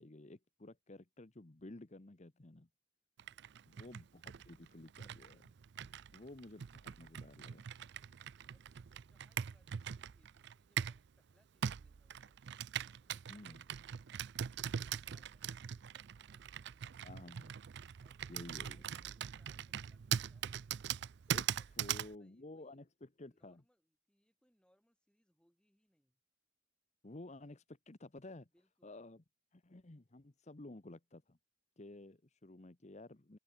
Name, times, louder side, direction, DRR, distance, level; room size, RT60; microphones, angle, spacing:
voice 1, 0.0-2.7 3.7-5.5 6.1-7.6 13.3-13.6 17.0-17.5 18.3-18.8 21.3-23.6 27.0-28.5 28.8-29.2 29.5-31.4 31.8-33.4, left 2 dB, 35° left, 1.0 m, -53 dB
Computer keyboard, 3.2-11.1 11.6-22.1, right 9 dB, 60° right, 0.4 m, -42 dB
voice 2, 3.3-3.8 8.5-12.4 13.0-13.9 14.7-17.1 18.0-20.6 21.6-22.8 23.3-26.2 28.5-29.0, equal, 5° left, 7.0 m, -77 dB
head